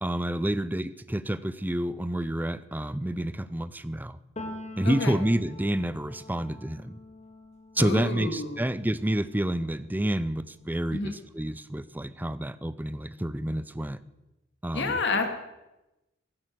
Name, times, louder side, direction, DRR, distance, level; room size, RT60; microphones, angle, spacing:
voice 1, 0.0-4.2 4.8-7.0 7.7-14.0 14.6-15.0, right 1 dB, 10° right, 15 dB, 0.5 m, -29 dB
Piano, 4.4-12.0 12.3-13.9, left 1 dB, 30° left, 2.2 m, -47 dB
voice 2, 7.8-8.6 10.9-11.1 14.7-15.2, left 3 dB, 55° left, 5 dB, 2.4 m, -29 dB
15.0 x 11.0 x 7.8 m, 0.97 s
head